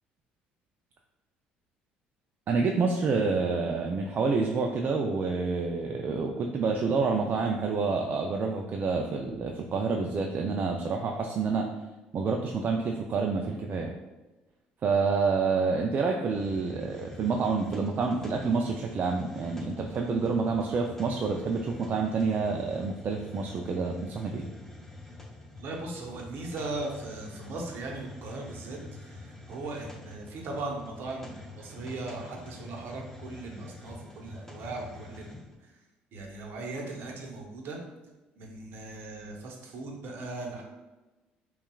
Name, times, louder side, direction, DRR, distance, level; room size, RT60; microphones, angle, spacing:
voice 1, 2.5-11.7 12.1-13.9 14.8-24.5, right 4 dB, 45° right, 1 dB, 0.4 m, -28 dB
Hiss, 16.3-35.5, left 2 dB, 10° left, 0.8 m, -46 dB
voice 2, 25.6-35.7 36.1-37.8 38.4-40.6, right 2 dB, 60° right, 0 dB, 0.9 m, -38 dB
5.4 x 2.3 x 2.3 m, 1.1 s
supercardioid pair, 70°, 4 cm